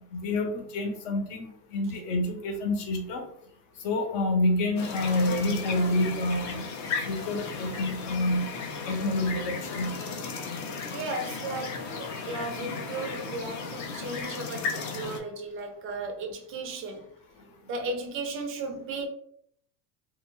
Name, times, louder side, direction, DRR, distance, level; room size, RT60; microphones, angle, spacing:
voice 1, 0.1-3.3 3.8-8.5 8.9-9.9, left 2 dB, 60° left, 0.9 m, -28 dB
sound 1, 4.8-15.2, left 5 dB, 35° left, 0.5 m, -35 dB
voice 2, 10.9-17.1 17.7-19.1, right 3 dB, 30° right, 0.4 m, -35 dB
2.3 x 2.3 x 3.0 m
supercardioid pair, 125°, 50 cm